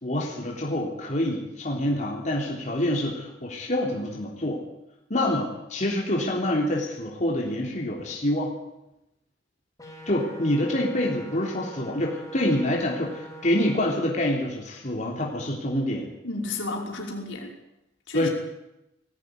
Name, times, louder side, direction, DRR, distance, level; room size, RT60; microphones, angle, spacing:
voice 1, 0.0-4.6 5.1-8.5 10.0-16.1 18.1-18.3, left 1 dB, 40° left, -1 dB, 3.6 m, -26 dB
sound 1, 9.8-13.8, right 1 dB, 20° left, 5.1 m, -43 dB
voice 2, 16.2-17.5 18.1-18.3, left 2 dB, 75° left, 0 dB, 5.6 m, -32 dB
20.5 x 16.5 x 9.8 m, 0.90 s
head